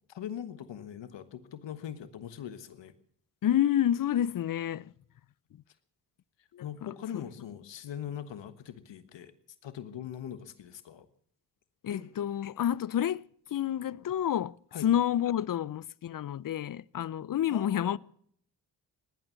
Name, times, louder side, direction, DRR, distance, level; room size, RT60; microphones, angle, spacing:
voice 1, 0.1-2.9 6.6-9.3 9.6-11.1 11.9-12.1 14.7-14.9 17.5-18.0, left 9 dB, 75° left, 1.4 m, -41 dB
voice 2, 3.4-4.9 6.5-6.6 11.8-13.2 13.5-14.6 14.8-18.0, left 10 dB, 50° left, 0.5 m, -29 dB
18.0 x 11.0 x 7.0 m
supercardioid pair, 45°, 44 cm